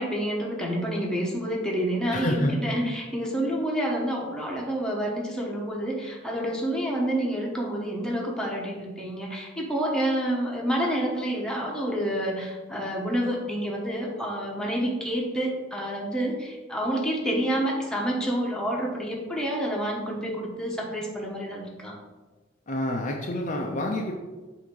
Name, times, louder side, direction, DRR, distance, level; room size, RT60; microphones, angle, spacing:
voice 1, 0.0-22.0, right 1 dB, 5° left, -3 dB, 1.1 m, -28 dB
voice 2, 2.1-2.5 22.7-24.1, left 1 dB, 40° left, 1 dB, 0.6 m, -28 dB
7.6 x 2.8 x 5.3 m, 1.2 s
head